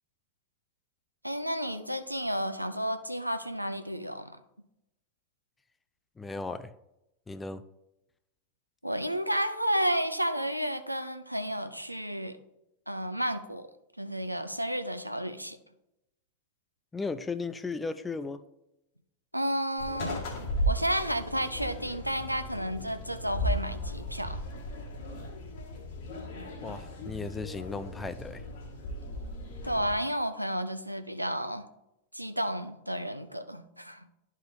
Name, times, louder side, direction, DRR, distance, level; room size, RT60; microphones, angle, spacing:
voice 1, 1.2-4.3 8.8-12.4 12.9-13.7 14.0-15.6 19.3-20.2 20.6-24.4 29.6-31.6 32.1-34.1, equal, 90° right, 9 dB, 0.5 m, -31 dB
voice 2, 6.2-6.7 7.3-7.6 16.9-18.4 26.6-28.4, left 4 dB, 10° left, 12 dB, 0.4 m, -36 dB
sound 1, 19.8-29.9, equal, 55° left, 1.8 m, -36 dB
11.5 x 4.9 x 2.7 m, 0.87 s
figure-of-eight pair, 90°, 0 cm